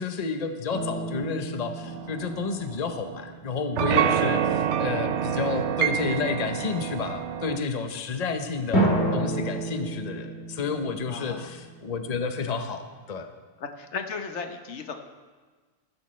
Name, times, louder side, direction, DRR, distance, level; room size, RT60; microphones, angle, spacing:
voice 1, 0.0-13.3, left 4 dB, 40° left, 7 dB, 0.8 m, -31 dB
sound 1, 0.7-3.8 8.7-12.4, right 1 dB, 70° left, 2.3 m, -30 dB
sound 2, 1.9-3.3 3.8-7.6, right 9 dB, 85° right, 0.9 m, -27 dB
voice 2, 11.1-11.5 13.6-14.9, left 5 dB, 85° left, 6 dB, 1.3 m, -35 dB
15.5 x 11.5 x 3.2 m, 1.4 s
omnidirectional pair, 1.1 m